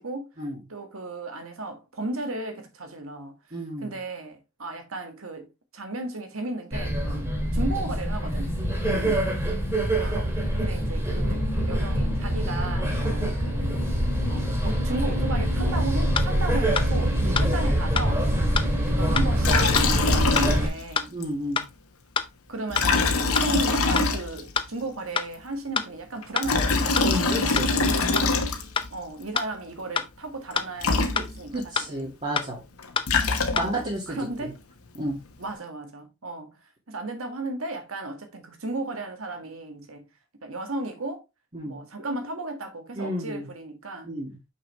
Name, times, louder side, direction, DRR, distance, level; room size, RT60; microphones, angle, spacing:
voice 1, 0.7-3.4 3.8-7.2 7.5-8.5 10.0-13.8 14.3-18.3 18.9-21.1 22.5-27.1 28.9-32.1 33.5-34.6 35.4-36.6 36.9-40.0 40.4-41.2 41.6-44.1, right 2 dB, 70° right, 1.7 m, -34 dB
voice 2, 3.5-3.9 7.1-7.3 8.9-9.2 17.2-17.5 18.3-18.6 21.1-21.7 27.0-27.7 31.5-32.6 33.6-34.5 35.0-35.2 41.5-41.8 42.9-43.5 44.0-44.4, equal, 35° right, 2.0 m, -32 dB
sound 1, 6.7-20.7, equal, 10° right, 2.5 m, -25 dB
sound 2, 16.2-16.3 16.8-16.9 17.4-17.5 18.0-18.1 18.6-18.7 19.2-19.3 19.8-19.9 20.4-20.5 21.0-21.1 21.6-21.7 22.2-22.3 22.8-22.9 23.4-23.5 24.0-24.1 24.6-24.7 25.2-25.3 25.8-25.9 26.4-26.5 27.0-27.1 27.6-27.7 28.2-28.3 28.8-28.9 29.4-29.5 30.0-30.1 30.6-30.7 31.2-31.3 31.8-31.9 32.4-32.5 33.0-33.1 33.6-33.7, left 5 dB, 25° left, 0.6 m, -25 dB
Liquid, 19.4-20.9 21.2-21.3 22.7-24.6 26.2-28.9 30.5-30.6 30.8-31.6 32.8-33.9, left 3 dB, 90° left, 1.3 m, -24 dB
6.0 x 5.9 x 3.2 m
head